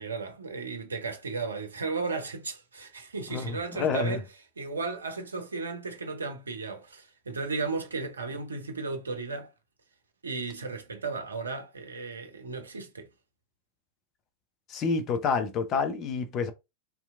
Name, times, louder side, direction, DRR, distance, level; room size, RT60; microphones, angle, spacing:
voice 1, 0.0-4.2 4.6-9.5 10.2-13.1, right 4 dB, 75° right, 0.6 m, -35 dB
voice 2, 3.3-4.2 14.7-16.5, left 5 dB, 30° left, 0.5 m, -28 dB
2.7 x 2.3 x 2.4 m
figure-of-eight pair, 90°, 0 cm